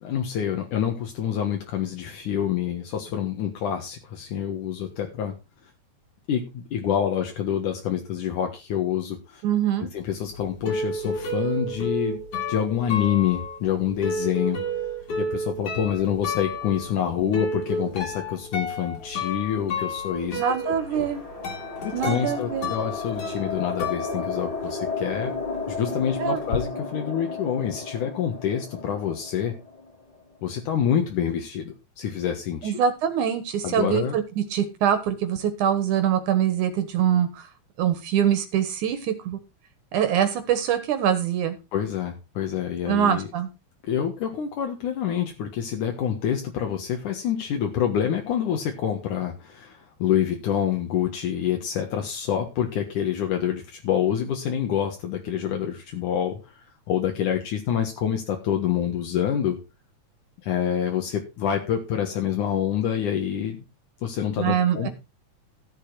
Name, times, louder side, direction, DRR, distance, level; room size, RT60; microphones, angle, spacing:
voice 1, 0.0-5.3 6.3-9.4 9.8-12.2 12.5-14.6 15.2-21.1 22.0-25.3 25.7-29.5 30.4-32.8 33.6-34.2 41.7-43.3 43.8-59.6 60.4-63.6 64.0-64.9, left 9 dB, 75° left, 3 dB, 3.0 m, -27 dB
voice 2, 9.4-9.9 20.4-21.2 21.9-22.7 26.2-26.4 32.6-37.5 37.8-39.4 39.9-41.6 42.9-43.5 64.4-64.9, right 9 dB, 75° right, 9 dB, 2.8 m, -24 dB
sound 1, 10.1-24.9 25.2-26.6, left 1 dB, 50° left, 3.2 m, -32 dB
sound 2, 19.9-30.4, left 4 dB, 10° left, 2.4 m, -34 dB
14.0 x 7.3 x 4.7 m, 0.28 s
omnidirectional pair, 3.6 m